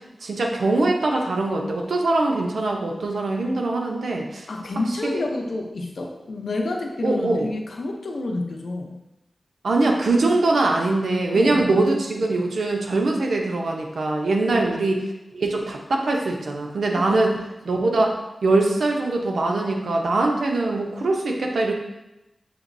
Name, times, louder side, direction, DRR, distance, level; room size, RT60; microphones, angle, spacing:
voice 1, 0.2-4.5 5.0-5.2 7.0-7.5 9.6-15.0 15.3-17.3 17.7-21.7, right 2 dB, 85° right, 1 dB, 0.7 m, -22 dB
voice 2, 4.5-9.0 11.3-11.8 14.4-14.7 17.0-17.4 17.7-17.9, left 2 dB, 70° left, 2 dB, 0.6 m, -29 dB
6.8 x 3.0 x 2.6 m, 0.94 s
wide cardioid pair, 105°, 0 cm